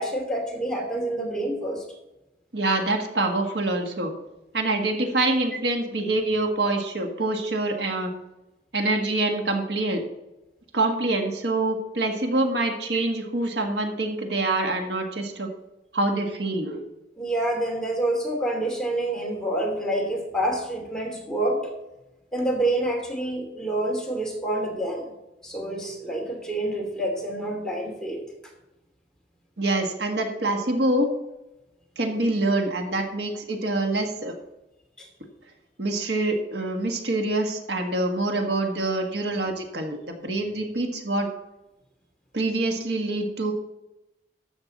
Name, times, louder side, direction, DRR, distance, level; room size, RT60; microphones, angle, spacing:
voice 1, 0.0-1.8 17.2-21.7 22.3-25.1 25.4-28.2 35.0-35.1, right 1 dB, 5° left, -1 dB, 2.8 m, -27 dB
voice 2, 2.5-4.1 4.5-8.1 8.7-10.0 10.7-15.5 15.9-16.8 29.6-31.1 32.0-34.3 35.8-41.3 42.3-43.5, right 2 dB, 75° right, 3 dB, 1.6 m, -25 dB
13.5 x 8.0 x 4.1 m, 0.95 s
head